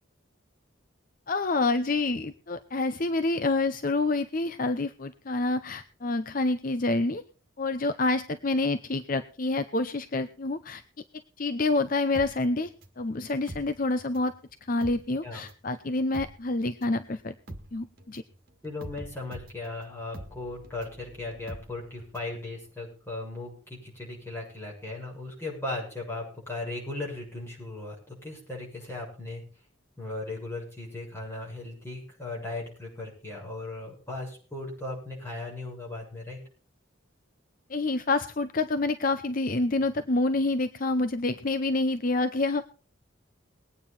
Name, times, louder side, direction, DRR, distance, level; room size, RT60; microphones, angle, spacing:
voice 1, 1.3-7.2 7.6-10.8 11.4-12.7 13.0-14.3 14.7-17.3 17.7-18.2 37.7-42.7, left 2 dB, 45° left, 10 dB, 0.7 m, -27 dB
sound 1, 12.1-14.4 14.7-22.4 22.7-22.8, right 1 dB, 50° right, 2.0 m, -45 dB
voice 2, 18.6-29.4 30.0-36.4, left 2 dB, 10° left, -3 dB, 7.3 m, -37 dB
21.0 x 9.3 x 4.2 m, 0.37 s
head